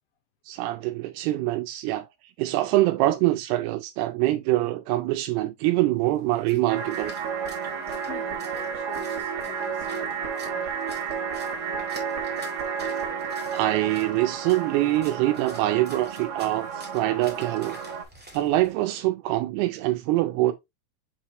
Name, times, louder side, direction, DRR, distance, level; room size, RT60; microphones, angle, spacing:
voice 1, 0.5-2.1 2.4-7.1 13.5-17.8 18.3-20.5, right 16 dB, 85° right, 2.6 m, -24 dB
Splash splatter, 6.0-18.7, right 1 dB, 10° right, 0.5 m, -49 dB
sound 1, 6.7-18.0, right 6 dB, 60° right, 1.8 m, -32 dB
voice 2, 7.8-11.1, left 8 dB, 70° left, 3.1 m, -46 dB
7.4 x 4.5 x 2.9 m
omnidirectional pair, 4.6 m